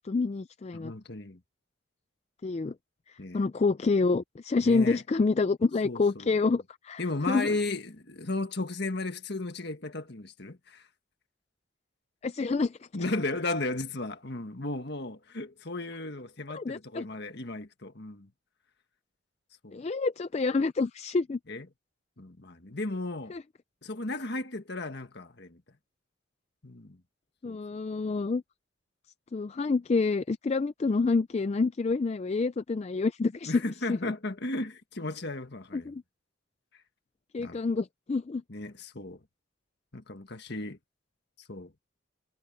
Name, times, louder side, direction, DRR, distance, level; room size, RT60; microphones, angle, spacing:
voice 1, 0.0-0.9 2.4-2.7 3.3-7.0 7.3-7.5 12.2-12.8 16.5-17.1 19.7-21.4 23.3-23.4 27.4-28.4 29.3-33.6 33.9-34.1 35.7-36.0 37.3-38.4, left 4 dB, 30° left, 0.3 m, -27 dB
voice 2, 0.7-1.4 3.2-3.4 4.6-5.0 5.8-6.6 7.0-10.9 12.9-18.3 19.6-19.8 21.5-21.7 22.2-23.3 23.8-25.6 26.6-27.0 27.5-27.6 28.0-28.3 33.5-35.9 37.4-37.6 38.5-39.2 39.9-40.8 41.5-41.7, left 2 dB, 50° left, 1.7 m, -35 dB
head